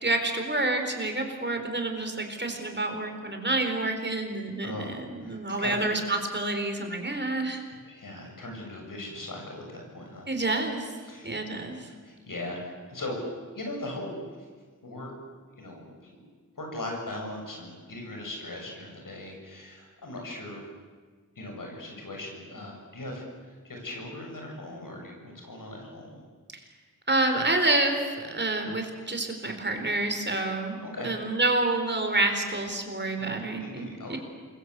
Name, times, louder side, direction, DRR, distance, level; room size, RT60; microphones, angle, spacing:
voice 1, 0.0-7.6 10.3-10.9 11.2-11.9 27.1-30.8 31.0-34.2, right 2 dB, 35° right, 5 dB, 4.3 m, -28 dB
voice 2, 4.6-5.8 7.8-10.3 11.0-11.4 11.9-13.2 13.5-14.5 14.8-15.1 15.5-16.2 16.5-20.6 21.4-26.2 30.8-31.1 33.6-34.2, left 1 dB, 85° left, 1 dB, 7.5 m, -39 dB
28.0 x 22.0 x 8.3 m, 1.5 s
wide cardioid pair, 80°, 32 cm